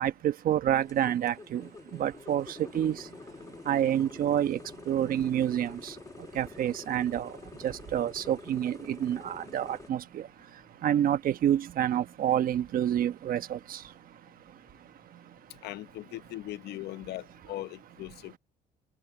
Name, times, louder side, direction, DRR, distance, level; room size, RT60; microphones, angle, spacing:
voice 1, 0.0-1.7 2.0-3.0 3.7-4.6 4.9-5.9 6.3-7.3 7.6-10.2 10.8-13.8, right 10 dB, 55° right, 1.2 m, -28 dB
sound 1, 0.8-9.9, left 3 dB, 20° left, 1.3 m, -47 dB
voice 2, 15.6-18.4, left 15 dB, 75° left, 0.9 m, -39 dB
open air
cardioid pair, 110°, 17 cm